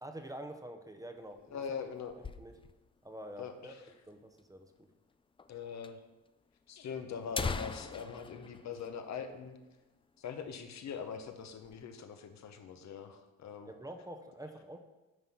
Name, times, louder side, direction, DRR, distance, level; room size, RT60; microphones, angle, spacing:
voice 1, 0.0-1.6 2.2-2.5 3.0-3.7 4.1-4.9 13.7-14.8, right 1 dB, 10° right, 6 dB, 0.8 m, -47 dB
sound 1, 1.2-3.0 3.3-3.4 3.6-3.7 4.4-4.5 5.4-5.5 5.8-5.9 6.7-6.8 7.1-9.7 10.0-10.2 10.6-10.8 11.3-11.8, left 4 dB, 20° left, 0.4 m, -41 dB
voice 2, 1.4-2.1 3.4-3.9 5.5-6.0 6.7-9.6 10.2-13.7, left 6 dB, 65° left, 7 dB, 1.0 m, -42 dB
9.4 x 3.9 x 5.9 m, 1.1 s
cardioid pair, 90°, 30 cm